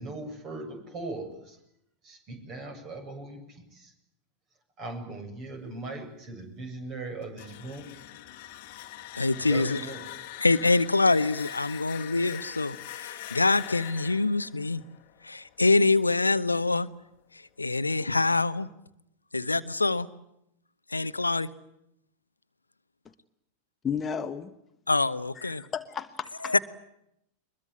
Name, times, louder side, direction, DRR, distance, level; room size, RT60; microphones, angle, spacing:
voice 1, 0.0-1.6 2.0-3.9 4.8-7.9 9.4-10.1, right 2 dB, 35° right, 7 dB, 7.5 m, -39 dB
sound 1, 7.2-16.0, left 13 dB, 45° left, 1.7 m, -43 dB
voice 2, 9.1-9.8 10.4-14.8 15.2-16.9 17.6-18.7 19.3-20.1 20.9-21.5 24.9-25.6 26.5-26.6, left 3 dB, 80° left, 14 dB, 0.9 m, -25 dB
voice 3, 23.8-24.6 25.3-26.5, left 7 dB, 20° left, 9 dB, 1.2 m, -33 dB
23.0 x 22.0 x 9.9 m, 0.79 s
figure-of-eight pair, 90°, 0 cm